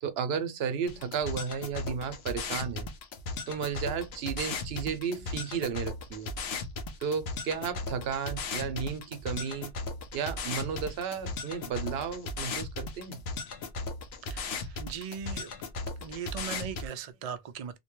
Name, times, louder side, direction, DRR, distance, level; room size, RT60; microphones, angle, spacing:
voice 1, 0.0-2.9 3.5-6.3 7.0-9.7 10.1-13.2, right 7 dB, 75° right, 0.8 m, -33 dB
sound 1, 0.9-16.9, left 3 dB, 80° left, 0.9 m, -37 dB
voice 2, 14.3-15.5 16.0-17.8, right 7 dB, 55° right, 0.4 m, -39 dB
2.7 x 2.2 x 2.9 m
omnidirectional pair, 1.0 m